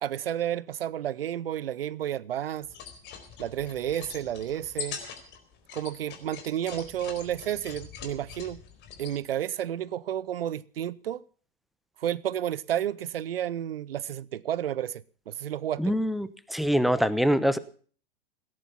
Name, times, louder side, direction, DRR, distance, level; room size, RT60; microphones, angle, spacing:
voice 1, 0.0-2.7 3.4-5.0 5.7-8.6 9.0-11.2 12.0-15.9, right 11 dB, 75° right, 0.7 m, -31 dB
sound 1, 2.6-9.2, left 7 dB, 40° left, 4.0 m, -43 dB
voice 2, 15.8-17.6, equal, ahead, 0.9 m, -24 dB
18.0 x 11.0 x 5.8 m
hypercardioid pair, 105°, 30 cm